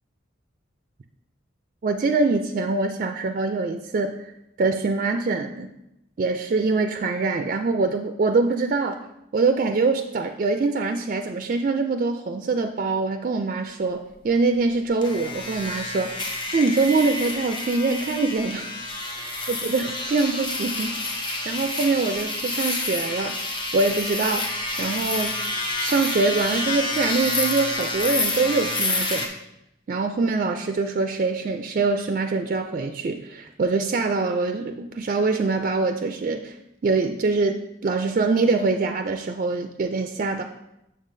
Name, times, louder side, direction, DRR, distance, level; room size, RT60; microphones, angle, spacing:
voice 1, 1.8-4.3 4.6-5.7 6.2-9.0 9.3-16.2 16.5-18.7 19.1-24.5 24.8-25.4 25.8-29.3 29.9-36.6 36.8-40.4, right 3 dB, 45° right, 6 dB, 0.3 m, -24 dB
sound 1, 15.0-29.3, left 2 dB, 25° left, 0.7 m, -28 dB
7.2 x 6.8 x 2.6 m, 0.87 s
head